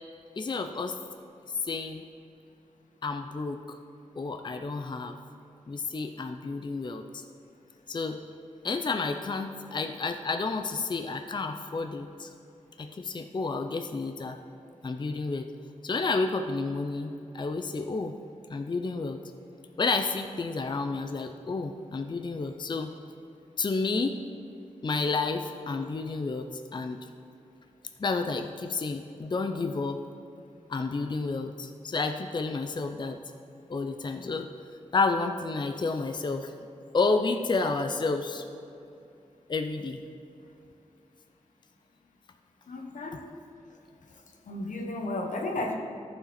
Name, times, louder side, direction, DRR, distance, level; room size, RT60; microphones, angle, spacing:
voice 1, 0.4-1.0 1.6-2.0 3.0-3.8 4.2-5.2 5.7-7.2 7.9-8.2 8.6-12.3 12.8-14.4 14.8-15.5 15.8-18.2 18.5-19.2 19.8-22.9 23.6-24.2 24.8-27.0 28.0-30.0 30.7-33.2 33.7-34.5 34.9-36.5 36.9-38.4 39.5-40.0, left 3 dB, 35° left, 6 dB, 0.5 m, -30 dB
voice 2, 42.7-43.2 44.5-45.7, left 2 dB, 90° left, 2 dB, 1.0 m, -33 dB
14.0 x 4.9 x 4.3 m, 2.7 s
wide cardioid pair, 80°, 13 cm